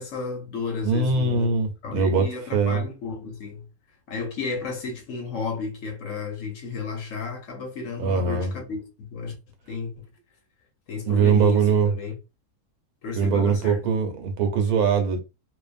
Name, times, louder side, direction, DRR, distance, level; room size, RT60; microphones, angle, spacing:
voice 1, 0.0-1.5 1.8-3.7 4.1-9.4 9.7-10.1 10.9-12.2 13.0-13.9, left 5 dB, 65° left, 1.0 m, -33 dB
voice 2, 0.8-2.3 2.5-2.8 8.0-8.5 11.1-11.9 13.2-15.2, right 5 dB, 75° right, 1.2 m, -21 dB
2.5 x 2.4 x 2.4 m
omnidirectional pair, 1.6 m